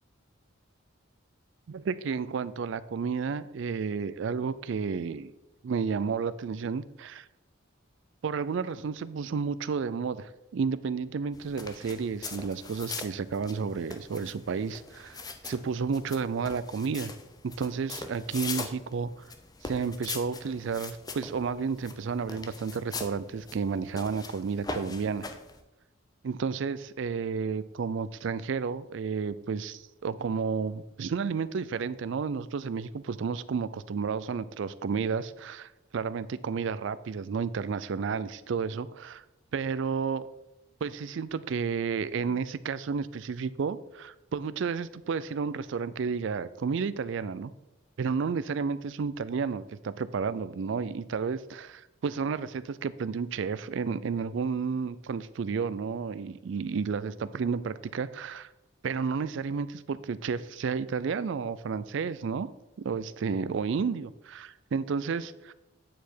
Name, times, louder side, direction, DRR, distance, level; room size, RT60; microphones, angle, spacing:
voice 1, 1.7-5.3 5.6-7.3 8.2-15.2 15.4-17.1 17.4-19.1 19.6-25.3 26.2-39.2 39.5-40.3 40.8-47.5 48.0-58.5 58.8-62.5 62.8-65.5, right 5 dB, 60° right, 16 dB, 0.3 m, -31 dB
sound 1, 11.3-25.6, left 4 dB, 20° left, 0.5 m, -42 dB
9.0 x 4.8 x 4.5 m, 0.98 s
head